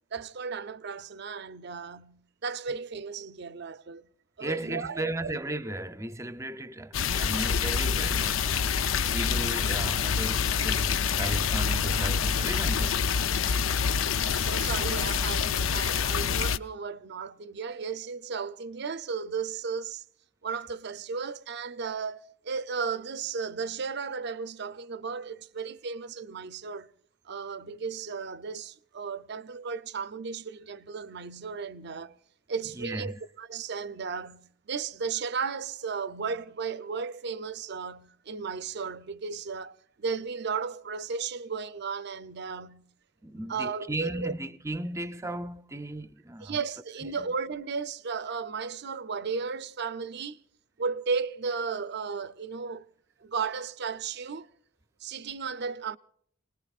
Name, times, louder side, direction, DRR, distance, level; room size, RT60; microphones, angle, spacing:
voice 1, 0.1-4.1 4.4-5.3 13.9-20.0 20.4-26.9 27.3-32.2 32.5-42.8 43.5-44.3 46.4-50.4 50.8-52.9 53.2-54.5 55.0-56.0, right 5 dB, 55° right, 0.6 m, -35 dB
voice 2, 4.4-8.5 9.1-13.1 15.8-16.0 32.7-33.2 43.2-46.6 47.2-47.3, right 1 dB, 15° right, 0.6 m, -35 dB
sound 1, 6.9-16.6, left 6 dB, 85° left, 0.6 m, -26 dB
30.0 x 19.5 x 2.4 m
head